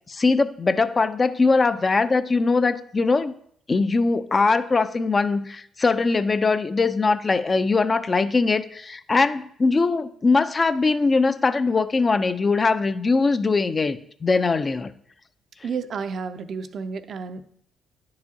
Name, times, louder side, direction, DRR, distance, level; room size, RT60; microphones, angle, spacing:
voice 1, 0.1-3.3 3.7-14.9, left 4 dB, 35° left, 12 dB, 0.5 m, -21 dB
voice 2, 15.6-17.5, right 5 dB, 60° right, 11 dB, 0.5 m, -31 dB
10.0 x 4.8 x 2.8 m, 0.66 s
supercardioid pair, 55°, 0 cm